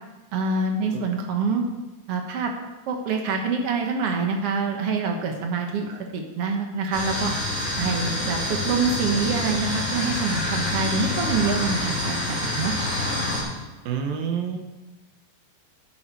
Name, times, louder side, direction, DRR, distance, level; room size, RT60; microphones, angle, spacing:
voice 1, 0.3-1.7 2.1-2.5 2.9-7.3 7.8-12.1 12.4-12.7, right 4 dB, 60° right, 3 dB, 1.7 m, -26 dB
sound 1, 6.9-13.4, left 1 dB, 20° left, 4.9 m, -27 dB
voice 2, 13.9-14.6, right 7 dB, 85° right, 4 dB, 3.0 m, -28 dB
12.0 x 10.5 x 4.6 m, 1.1 s
omnidirectional pair, 3.9 m